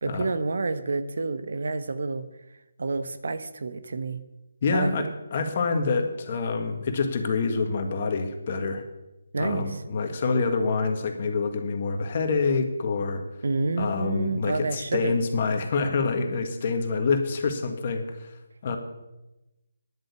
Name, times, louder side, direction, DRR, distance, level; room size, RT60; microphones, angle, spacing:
voice 1, 0.0-2.3 2.8-4.2 4.7-5.1 9.3-9.8 13.4-15.2, right 3 dB, 70° right, 11 dB, 1.1 m, -29 dB
voice 2, 4.6-8.8 9.4-13.2 13.8-18.3 18.6-18.8, left 4 dB, 40° left, 6 dB, 1.8 m, -26 dB
10.5 x 7.9 x 8.5 m, 1.0 s
figure-of-eight pair, 155°, 0 cm